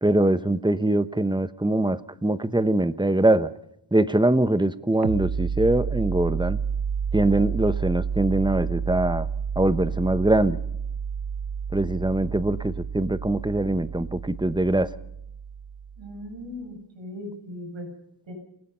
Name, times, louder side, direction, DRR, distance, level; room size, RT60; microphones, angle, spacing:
voice 1, 0.0-3.5 3.9-6.6 7.1-9.3 9.6-10.6 11.7-14.9, right 1 dB, 10° right, 13 dB, 1.0 m, -23 dB
sound 1, 5.0-16.4, right 6 dB, 55° right, 0.9 m, -30 dB
voice 2, 16.0-17.9 18.3-18.4, left 1 dB, 75° right, 3 dB, 7.8 m, -38 dB
28.0 x 18.0 x 5.6 m, 0.74 s
cardioid pair, 70°, 46 cm